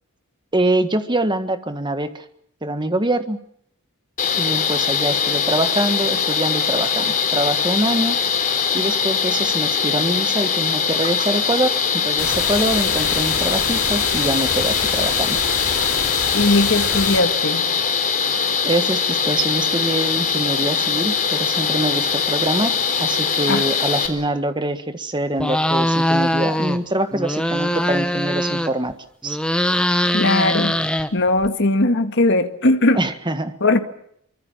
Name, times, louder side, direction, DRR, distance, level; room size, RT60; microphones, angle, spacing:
voice 1, 0.5-2.2 2.6-3.4 4.3-8.2 8.7-15.4 18.6-22.7 23.0-28.9 29.2-29.4 32.9-33.5, right 1 dB, 20° right, 1.6 m, -24 dB
sound 1, 4.2-24.1, left 6 dB, 40° left, 3.7 m, -21 dB
sound 2, 12.2-17.2, left 6 dB, 75° left, 5.6 m, -27 dB
voice 2, 16.3-17.7 23.5-23.6 30.1-30.8 31.1-33.0 33.6-33.8, left 2 dB, 55° left, 2.0 m, -18 dB
sound 3, 25.4-26.8 27.1-28.9 29.2-31.5, left 1 dB, 5° left, 1.2 m, -21 dB
24.5 x 24.0 x 7.4 m
head